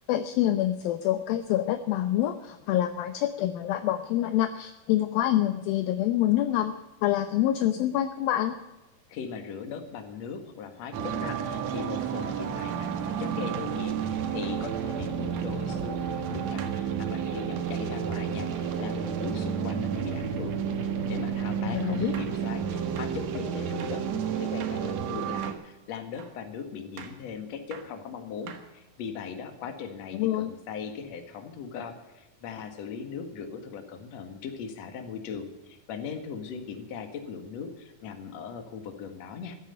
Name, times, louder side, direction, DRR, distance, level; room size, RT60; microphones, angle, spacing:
voice 1, 0.1-6.7 7.0-8.6 21.6-22.2 30.1-30.5, left 13 dB, 75° left, 10 dB, 2.4 m, -26 dB
voice 2, 9.1-39.5, left 6 dB, 50° left, 6 dB, 2.4 m, -39 dB
sound 1, 10.9-25.5, right 7 dB, 60° right, 1.9 m, -31 dB
sound 2, 12.5-12.6 13.5-13.8 14.4-14.7 15.4-15.6 16.6-16.8 18.1-18.3 21.4-21.5 22.1-22.4 23.0-23.2 23.8-24.1 24.6-24.9 25.4-25.7 26.2-26.4 27.0-27.2 27.7-28.0 28.5-29.0, right 7 dB, 90° right, 3.7 m, -46 dB
15.0 x 9.2 x 9.8 m, 1.0 s
omnidirectional pair, 4.6 m